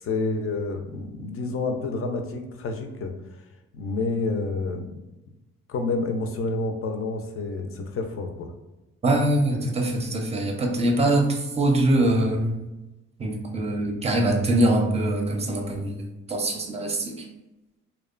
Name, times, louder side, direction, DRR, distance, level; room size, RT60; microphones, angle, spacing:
voice 1, 0.0-3.1 3.7-4.9 5.7-8.5, left 3 dB, 45° left, 5 dB, 0.5 m, -29 dB
voice 2, 9.0-12.5 13.2-16.0 16.3-17.3, right 1 dB, 20° right, 2 dB, 0.5 m, -23 dB
2.8 x 2.1 x 2.4 m, 1.0 s
cardioid pair, 90°, 30 cm